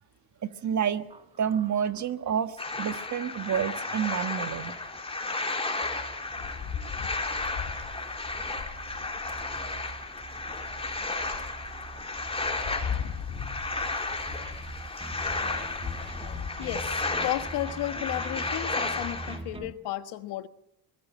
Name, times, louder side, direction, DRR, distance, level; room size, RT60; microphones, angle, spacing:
voice 1, 0.4-1.1 1.4-4.8 6.8-6.9, right 8 dB, 45° right, 10 dB, 1.4 m, -29 dB
sound 1, 1.1-2.9 3.3-3.4 3.8-3.9 4.7-19.7, right 2 dB, 15° right, 1.4 m, -44 dB
sound 2, 2.6-19.4, left 3 dB, 15° left, 3.7 m, -33 dB
Rain, 6.4-9.9 10.4-10.5 11.0-17.6, left 8 dB, 55° left, 2.7 m, -40 dB
voice 2, 16.6-20.5, left 15 dB, 85° left, 9 dB, 1.5 m, -33 dB
23.5 x 19.0 x 7.6 m, 0.78 s
cardioid pair, 110°, 39 cm